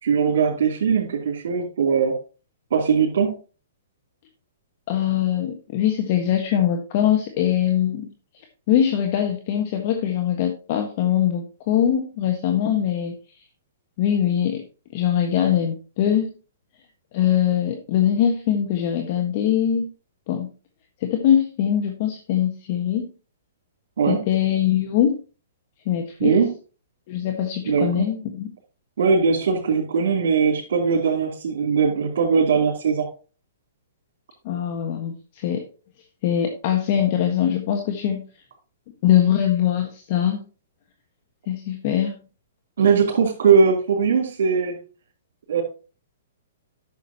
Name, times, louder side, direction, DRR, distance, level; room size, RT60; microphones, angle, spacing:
voice 1, 0.0-2.2 2.7-3.4 24.0-24.2 26.2-26.5 27.6-28.1 29.0-33.1 42.8-44.7 45.5-45.6, right 6 dB, 65° right, -4 dB, 3.0 m, -20 dB
voice 2, 4.9-8.1 8.7-13.2 14.0-14.6 14.9-16.3 17.1-19.9 20.3-20.5 21.0-23.1 24.1-25.2 25.8-26.4 27.1-28.5 34.4-35.6 36.2-38.2 39.0-40.4 41.5-42.1, left 10 dB, 50° left, 4 dB, 1.5 m, -22 dB
11.0 x 7.1 x 2.9 m, 0.34 s
hypercardioid pair, 135°, 0 cm